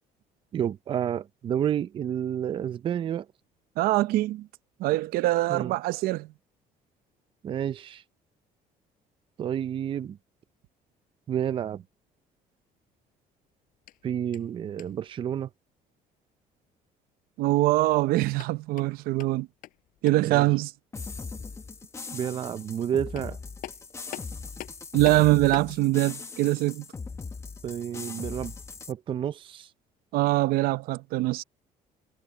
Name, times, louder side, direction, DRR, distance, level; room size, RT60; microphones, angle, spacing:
voice 1, 0.5-3.3 5.5-5.7 7.4-8.0 9.4-10.2 11.3-11.8 14.0-15.5 20.2-20.5 22.1-23.4 27.6-28.5 28.9-29.7, right 9 dB, 35° right, 0.5 m, -30 dB
voice 2, 3.8-4.5 4.8-6.3 17.4-19.5 20.0-20.7 24.9-26.8 30.1-31.4, right 18 dB, 80° right, 0.7 m, -23 dB
sound 1, 13.7-15.1 18.2-20.4 22.7-22.8 23.1-25.8, left 14 dB, 65° left, 5.7 m, -45 dB
sound 2, 20.9-28.9, left 4 dB, 20° left, 1.0 m, -39 dB
cardioid pair, 150°, 15 cm